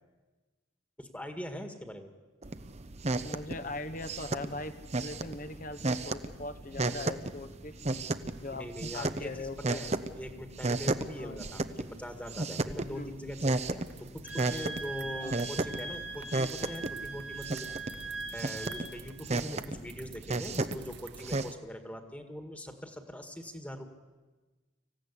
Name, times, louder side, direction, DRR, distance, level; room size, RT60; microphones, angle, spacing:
voice 1, 1.0-2.1 8.6-9.9 10.2-23.9, equal, 5° left, 6 dB, 1.8 m, -42 dB
sound 1, 2.4-21.5, right 2 dB, 35° right, 0.9 m, -35 dB
voice 2, 3.2-7.7 8.4-9.8 11.2-11.4 12.9-13.1 15.2-15.4 18.8-19.0, left 2 dB, 40° left, 10 dB, 1.1 m, -41 dB
sound 2, 13.9-21.5, right 10 dB, 60° right, 1.2 m, -53 dB
Wind instrument woodwind instrument, 14.2-19.0, right 3 dB, 70° left, 2.4 m, -41 dB
25.5 x 15.5 x 9.9 m, 1.3 s
head